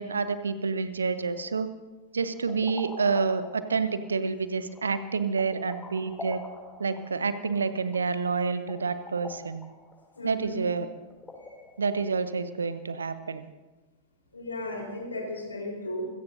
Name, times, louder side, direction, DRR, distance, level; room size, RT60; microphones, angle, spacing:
voice 1, 0.0-1.7 2.1-6.4 6.8-9.7 10.2-10.9 11.8-13.5, right 5 dB, 75° right, 12 dB, 0.9 m, -28 dB
sound 1, 2.3-11.9, left 1 dB, 15° left, 4.5 m, -45 dB
voice 2, 10.2-10.6 11.4-11.6 14.3-16.0, left 1 dB, 80° left, 1 dB, 4.1 m, -35 dB
26.0 x 17.0 x 2.7 m, 1.2 s
figure-of-eight pair, 90°, 0 cm